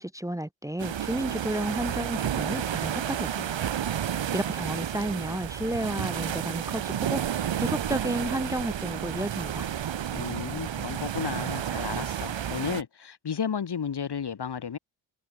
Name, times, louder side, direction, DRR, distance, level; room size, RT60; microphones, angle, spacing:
voice 1, 0.0-3.6 4.3-9.7, right 1 dB, 5° right, 1.2 m, -32 dB
sound 1, 0.8-12.8, right 9 dB, 70° right, 1.2 m, -31 dB
voice 2, 10.1-14.8, left 7 dB, 55° left, 1.9 m, -33 dB
wide cardioid pair, 115°, 48 cm